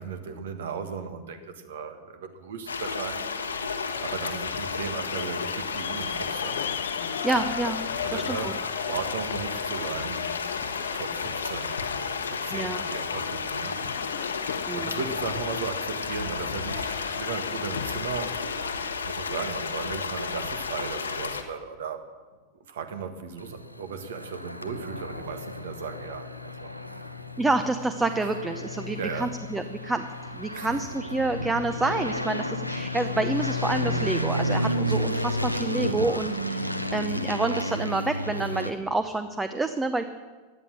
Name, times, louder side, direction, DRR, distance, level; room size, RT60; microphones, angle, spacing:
voice 1, 0.0-3.5 4.0-6.6 8.0-10.6 10.9-14.2 14.7-18.4 19.0-22.0 22.7-27.0 29.0-29.3 30.5-30.7, right 6 dB, 60° right, 9 dB, 1.5 m, -36 dB
sound 1, 2.7-21.4, left 5 dB, 75° left, 1.2 m, -32 dB
sound 2, 3.9-19.0, left 10 dB, 60° left, 0.7 m, -38 dB
voice 2, 7.2-7.8 8.1-8.5 12.5-12.8 14.7-15.0 27.4-30.0 30.3-40.0, right 2 dB, 10° right, 10 dB, 0.7 m, -28 dB
sound 3, 23.4-38.7, equal, 90° left, 0.8 m, -31 dB
16.0 x 11.0 x 6.3 m, 1.4 s
figure-of-eight pair, 90°, 0 cm